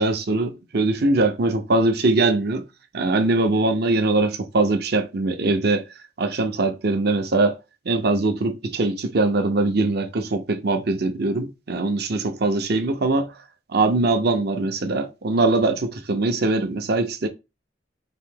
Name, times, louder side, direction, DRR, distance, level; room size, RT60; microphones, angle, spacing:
voice 1, 0.0-2.6 2.9-5.8 6.2-7.6 7.9-13.3 13.7-17.3, right 2 dB, 60° right, 0.7 m, -22 dB
3.9 x 2.7 x 3.8 m
head